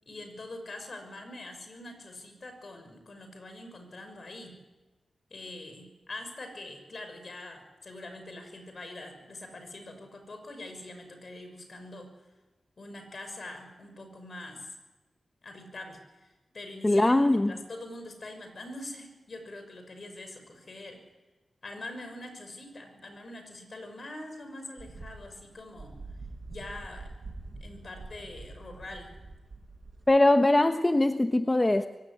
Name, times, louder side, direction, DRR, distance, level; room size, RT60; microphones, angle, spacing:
voice 1, 0.0-4.6 5.3-12.1 12.8-14.8 15.4-21.0 21.6-26.0 26.5-27.3 27.6-29.2, left 2 dB, 55° left, 6 dB, 6.2 m, -44 dB
voice 2, 16.8-17.5 30.1-31.9, left 2 dB, 25° left, 8 dB, 1.1 m, -22 dB
sound 1, 24.8-30.2, right 3 dB, 50° right, 6.7 m, -45 dB
24.0 x 17.0 x 10.0 m, 1.2 s
cardioid pair, 45°, 0 cm